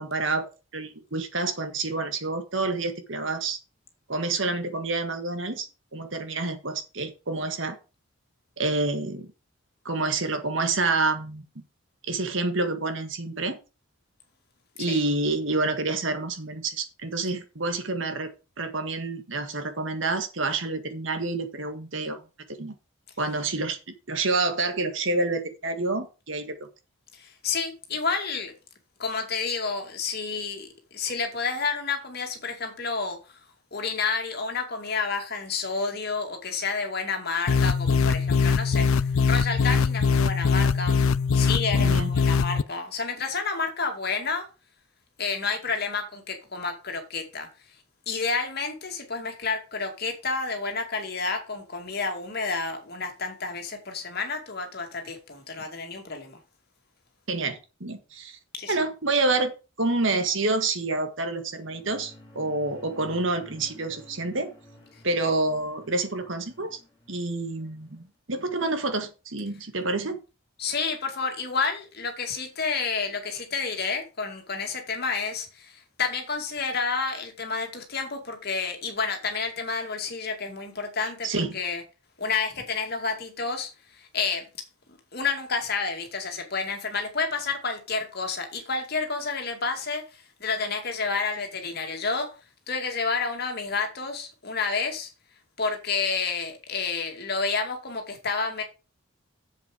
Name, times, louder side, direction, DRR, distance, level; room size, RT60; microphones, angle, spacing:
voice 1, 0.0-3.6 4.1-5.7 5.9-7.8 8.6-9.3 9.9-11.5 12.1-13.6 14.8-18.3 18.6-22.2 22.6-22.7 23.2-23.8 24.1-26.5 41.8-42.1 57.3-58.4 58.7-59.5 59.8-64.5 65.0-66.8 67.1-70.2 81.0-81.6, right 3 dB, 65° right, 1.7 m, -28 dB
voice 2, 27.1-28.5 29.0-33.4 33.7-41.0 41.3-44.5 45.2-47.5 48.1-56.4 58.5-58.7 70.6-81.3 81.5-81.8 82.2-84.4 85.1-92.3 92.7-95.1 95.6-98.6, left 4 dB, 50° left, 2.3 m, -30 dB
sound 1, 37.5-42.6, left 5 dB, 85° left, 0.5 m, -22 dB
sound 2, 61.4-68.0, left 1 dB, 20° left, 3.4 m, -52 dB
7.7 x 7.6 x 5.1 m
head